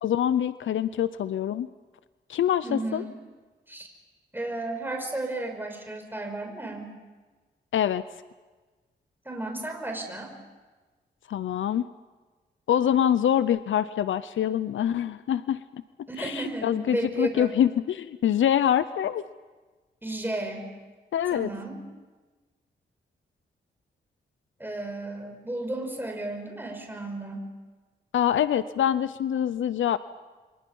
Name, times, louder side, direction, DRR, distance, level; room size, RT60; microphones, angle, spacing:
voice 1, 0.0-1.7 2.3-3.0 7.7-8.0 11.3-11.8 12.7-15.8 16.2-19.2 21.1-21.5 28.1-30.0, left 10 dB, 85° left, 15 dB, 0.6 m, -25 dB
voice 2, 2.6-3.1 3.7-3.9 4.3-6.9 9.3-10.3 16.1-17.6 20.0-20.7 21.3-21.8 24.6-27.5, right 2 dB, 10° right, 3 dB, 5.4 m, -33 dB
28.5 x 24.5 x 5.5 m, 1.3 s
cardioid pair, 70°, 20 cm